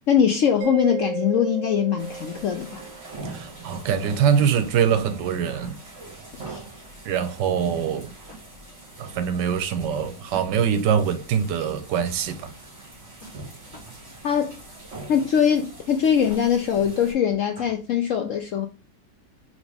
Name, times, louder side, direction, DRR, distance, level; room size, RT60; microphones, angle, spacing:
voice 1, 0.1-2.8 6.3-6.6 14.2-14.6 15.1-18.7, left 8 dB, 70° left, 0.7 m, -22 dB
Mallet percussion, 0.6-3.1, right 7 dB, 65° right, 1.2 m, -33 dB
sound 1, 2.0-17.1, right 2 dB, 35° right, 2.5 m, -43 dB
voice 2, 3.2-5.8 7.0-8.1 9.0-12.5, right 8 dB, 80° right, 1.3 m, -23 dB
sound 2, 4.9-5.8 6.3-6.9 7.3-7.9 8.3-8.4 8.9-9.2 10.2-10.8 11.9-12.0 13.0-14.0 14.4-14.5 15.2-15.6 16.1-16.4 17.0-17.1 17.3-17.8, right 1 dB, 15° right, 3.0 m, -47 dB
5.1 x 3.1 x 3.4 m
omnidirectional pair, 1.9 m